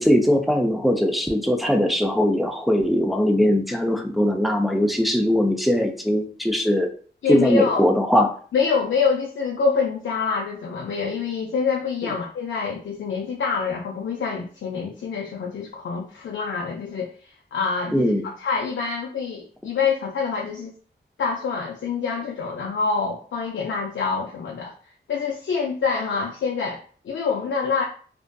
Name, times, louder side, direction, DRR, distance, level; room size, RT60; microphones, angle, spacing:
voice 1, 0.0-6.9 7.3-8.4 17.9-18.2, equal, ahead, 2 dB, 0.4 m, -20 dB
voice 2, 7.2-7.8 8.5-20.7 21.2-24.7 25.1-27.8, left 5 dB, 85° left, -1 dB, 0.4 m, -26 dB
2.6 x 2.4 x 2.2 m, 0.43 s
wide cardioid pair, 95°, 19 cm